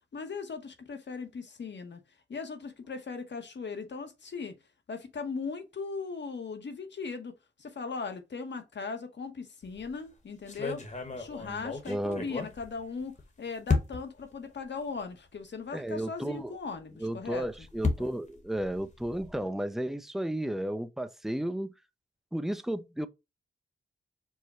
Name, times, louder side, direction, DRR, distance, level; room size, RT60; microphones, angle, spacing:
voice 1, 0.1-2.0 2.3-4.5 4.9-7.3 7.6-10.8 11.2-17.7, left 4 dB, 60° left, 1.0 m, -38 dB
sound 1, 9.6-9.9 10.5-13.2 13.7-14.2 15.0-15.1 15.4-15.5 17.1-19.5, left 4 dB, 35° left, 1.1 m, -33 dB
voice 2, 11.9-12.3 15.7-16.5 17.0-21.7 22.3-23.1, right 1 dB, ahead, 0.4 m, -33 dB
4.8 x 2.2 x 4.1 m
wide cardioid pair, 85°, 20 cm